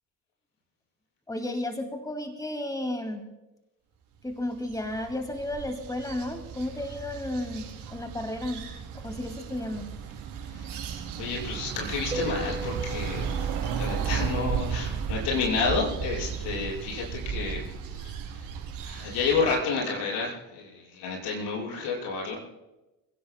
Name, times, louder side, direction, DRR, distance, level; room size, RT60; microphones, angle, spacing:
voice 1, 1.3-3.2 4.2-8.7 9.0-9.9, left 1 dB, 10° left, 6 dB, 2.4 m, -33 dB
sound 1, 4.3-19.6, right 7 dB, 70° right, 4.3 m, -34 dB
voice 2, 10.5-10.8 11.1-18.1 18.8-22.4, left 4 dB, 70° left, -5 dB, 6.2 m, -30 dB
sound 2, 12.1-14.3 16.5-18.1, right 1 dB, 15° right, 4.1 m, -40 dB
28.0 x 16.5 x 2.3 m, 1.0 s
hypercardioid pair, 50°, 43 cm